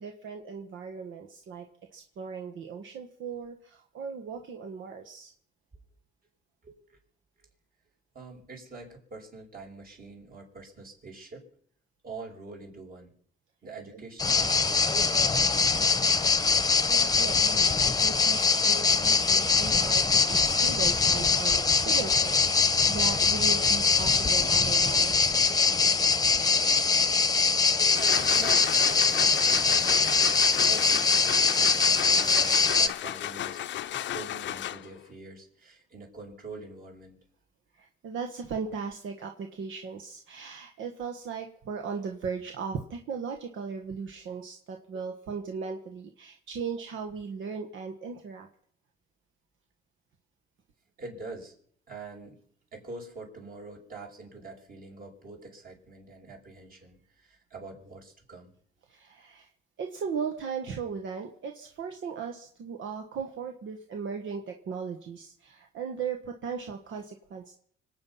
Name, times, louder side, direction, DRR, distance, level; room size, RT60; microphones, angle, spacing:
voice 1, 0.0-5.3 13.9-14.0 16.6-25.3 37.7-48.5 58.9-59.5 59.8-67.5, right 6 dB, 75° right, 4 dB, 1.5 m, -37 dB
voice 2, 6.6-7.0 7.4-7.5 8.1-11.5 12.0-13.1 13.6-16.2 28.0-30.3 30.6-33.6 33.9-37.2 44.9-45.0 51.0-51.5 51.9-52.4 52.7-58.5, right 3 dB, 45° right, 0 dB, 5.7 m, -45 dB
sound 1, 14.2-32.9, left 4 dB, 20° left, 1.0 m, -23 dB
sound 2, 27.7-35.1, left 12 dB, 70° left, 0.6 m, -35 dB
25.5 x 9.1 x 5.6 m, 0.63 s
cardioid pair, 90°, 20 cm